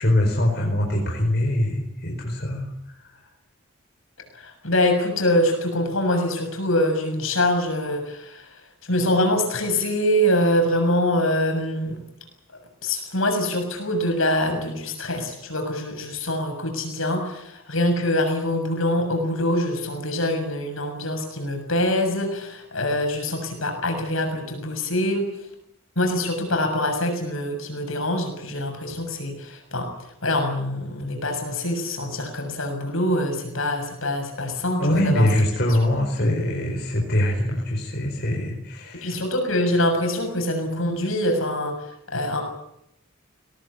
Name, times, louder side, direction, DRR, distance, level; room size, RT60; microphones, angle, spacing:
voice 1, 0.0-3.0 34.8-39.2, left 1 dB, 50° left, 0 dB, 4.7 m, -23 dB
voice 2, 4.3-8.6 8.9-12.0 12.8-25.2 25.9-29.9 30.2-35.3 35.7-35.8 39.0-41.8 42.1-42.4, left 1 dB, 70° left, 5 dB, 7.0 m, -24 dB
23.0 x 18.5 x 9.8 m, 0.81 s
head